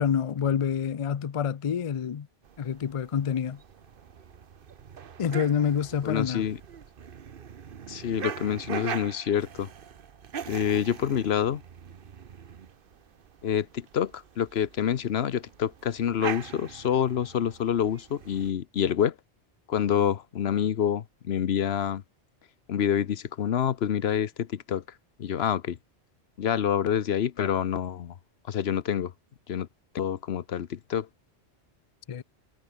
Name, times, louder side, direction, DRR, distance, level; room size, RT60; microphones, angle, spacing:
voice 1, 0.0-2.3 2.6-3.6 5.2-6.5 32.1-32.2, left 7 dB, 45° left, 0.4 m, -27 dB
sound 1, 2.4-18.5, right 7 dB, 55° right, 1.0 m, -42 dB
voice 2, 6.0-6.6 7.9-9.7 10.5-11.6 13.4-19.1 19.7-22.0 22.7-24.8 25.2-25.8 26.4-28.1 28.5-29.1 29.5-29.7 29.9-31.1, left 9 dB, 70° left, 1.0 m, -27 dB
omnidirectional pair, 1.1 m